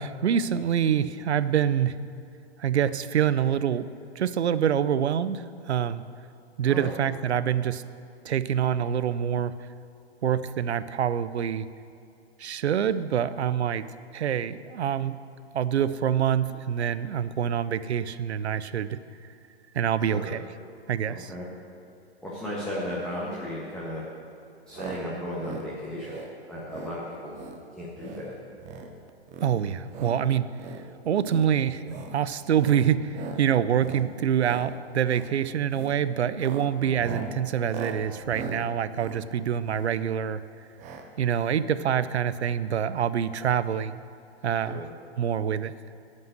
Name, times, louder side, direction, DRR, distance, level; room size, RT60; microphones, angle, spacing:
voice 1, 0.0-2.0 2.6-3.9 4.2-6.0 6.6-7.8 8.2-9.5 10.2-11.7 12.4-13.8 14.1-15.2 15.5-19.0 19.7-20.4 20.9-21.3 29.4-30.5 31.0-40.4 41.2-44.0 44.4-44.9 45.2-45.7, right 9 dB, 80° right, 14 dB, 0.6 m, -26 dB
voice 2, 21.1-21.5 22.2-24.0 24.7-27.4 27.8-28.3 36.8-37.0 44.7-44.9, left 1 dB, ahead, -7 dB, 1.5 m, -35 dB
sound 1, 24.7-25.0 25.3-25.7 26.0-26.3 26.7-26.9 27.3-27.6 27.9-28.2 28.6-28.9 29.3-30.2 30.5-30.8 31.2-31.5 31.8-32.1 32.5-32.8 33.1-33.4 33.8-34.1 34.4-34.7 35.0-35.3 35.7-36.0 36.3-40.0 40.8-41.1 41.3-41.4 41.6-41.7, right 5 dB, 20° right, 0.9 m, -39 dB
11.5 x 5.4 x 7.7 m, 2.5 s
hypercardioid pair, 125°, 33 cm